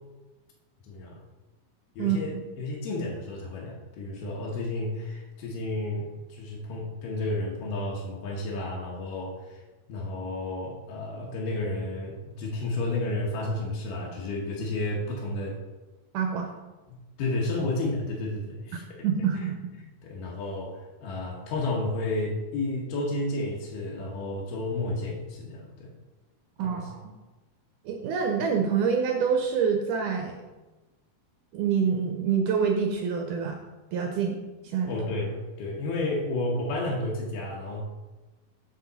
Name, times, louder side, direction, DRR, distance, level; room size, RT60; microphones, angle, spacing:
voice 1, 0.8-1.2 2.0-9.6 9.9-15.6 16.9-19.1 19.3-19.5 20.0-25.9 26.6-26.9 34.9-37.8, left 2 dB, 70° left, -3 dB, 2.5 m, -32 dB
voice 2, 16.1-16.5 18.7-19.7 26.6-27.0 27.9-30.4 31.5-33.6 33.9-34.4 34.6-35.0, right 6 dB, 80° right, 4 dB, 1.9 m, -26 dB
7.6 x 6.9 x 4.0 m, 1.2 s
omnidirectional pair, 4.3 m